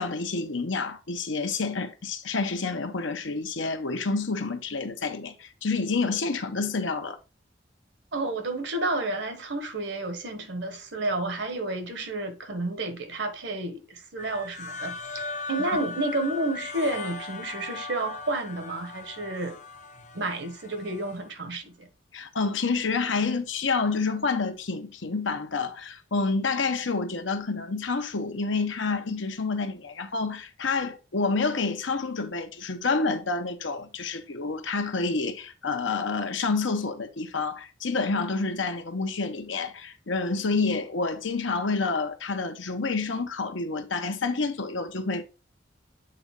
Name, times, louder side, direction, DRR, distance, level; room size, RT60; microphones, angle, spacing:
voice 1, 0.0-7.2 22.1-45.2, left 4 dB, 85° left, 1.0 m, -28 dB
voice 2, 8.1-19.6 20.1-21.9, right 2 dB, 70° right, 1.3 m, -31 dB
sound 1, 14.2-21.2, left 3 dB, 40° left, 0.6 m, -38 dB
7.9 x 4.0 x 3.7 m
head